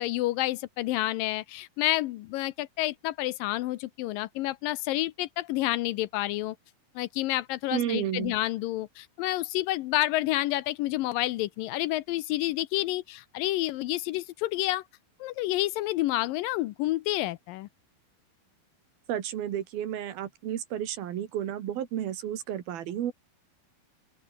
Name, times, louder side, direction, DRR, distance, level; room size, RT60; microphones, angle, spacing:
voice 1, 0.0-6.6 7.0-14.8 15.2-17.7, left 16 dB, 75° left, 2.2 m, -29 dB
voice 2, 7.7-8.3 19.1-23.1, right 10 dB, 75° right, 3.7 m, -32 dB
open air
omnidirectional pair, 4.4 m